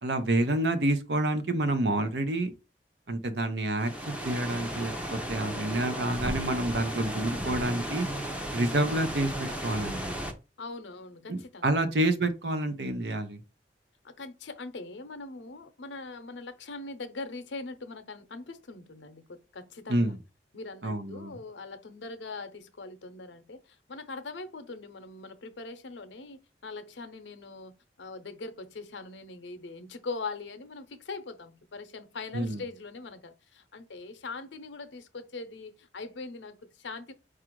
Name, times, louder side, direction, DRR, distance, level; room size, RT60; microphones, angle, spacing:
voice 1, 0.0-2.5 3.1-8.1 8.5-10.1 11.3-13.4 19.9-20.2 20.8-21.4 32.3-32.6, right 1 dB, 65° right, 0.7 m, -28 dB
sound 1, 3.7-10.3, right 1 dB, 5° right, 0.6 m, -34 dB
voice 2, 10.6-12.0 14.0-20.1 20.5-27.7 28.0-37.1, left 3 dB, 90° left, 0.7 m, -41 dB
4.8 x 2.5 x 4.5 m
head